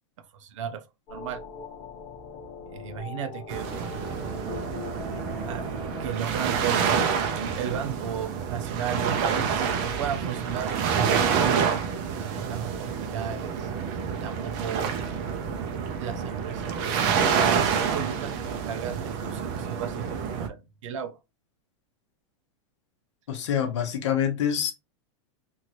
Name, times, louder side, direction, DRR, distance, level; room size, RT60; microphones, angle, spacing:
voice 1, 0.4-0.8 1.1-1.4 2.7-4.2 5.4-5.7 6.0-10.8 11.4-11.9 12.5-13.7 14.2-15.0 15.7-21.2, right 8 dB, 85° right, 0.6 m, -35 dB
sound 1, 1.1-6.1, left 5 dB, 35° left, 0.7 m, -40 dB
sound 2, 3.5-20.5, right 6 dB, 25° right, 0.3 m, -28 dB
voice 2, 23.3-24.7, left 9 dB, 70° left, 0.8 m, -26 dB
2.9 x 2.6 x 2.8 m
supercardioid pair, 180°, 16 cm